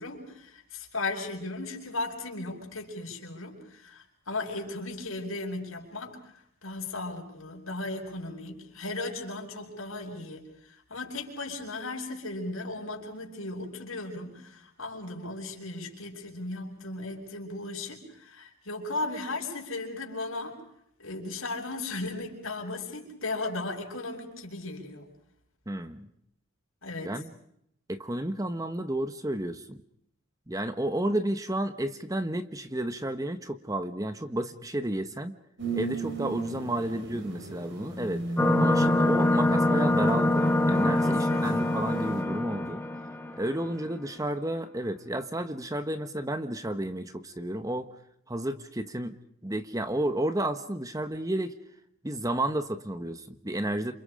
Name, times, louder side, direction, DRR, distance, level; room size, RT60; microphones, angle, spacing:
voice 1, 0.0-6.2 6.6-20.6 21.0-25.1 26.8-27.1 40.9-41.5, left 2 dB, 75° left, 1 dB, 6.6 m, -36 dB
voice 2, 25.7-26.1 27.0-27.3 27.9-29.8 30.5-35.4 35.7-38.2 38.6-42.8 43.3-47.9 48.3-49.2 49.4-51.6 52.0-53.9, right 1 dB, 15° right, 10 dB, 1.2 m, -31 dB
sound 1, 35.6-42.2, right 4 dB, 55° right, 5.0 m, -36 dB
sound 2, 38.4-43.6, left 1 dB, 10° left, 1.8 m, -25 dB
30.0 x 27.5 x 5.1 m, 0.72 s
head